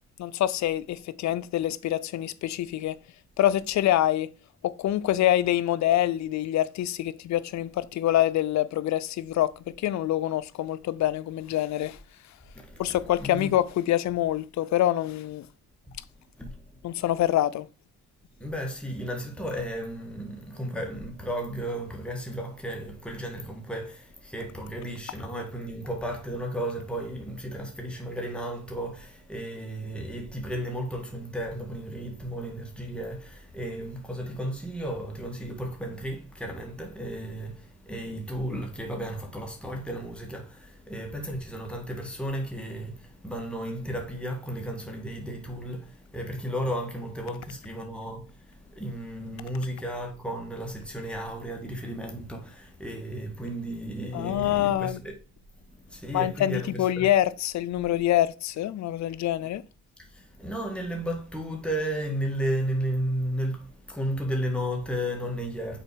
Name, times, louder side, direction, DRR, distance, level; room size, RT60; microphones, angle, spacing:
voice 1, 0.2-3.0 3.4-4.3 4.8-9.5 9.8-12.0 12.8-15.5 16.8-17.7 54.1-55.0 56.1-59.6, left 13 dB, 65° left, 0.5 m, -25 dB
voice 2, 12.5-13.5 16.4-16.6 18.4-55.2 55.6-57.1 59.1-59.2 60.0-65.8, equal, 5° left, 1.9 m, -34 dB
6.5 x 4.2 x 4.6 m
cardioid pair, 90°, 30 cm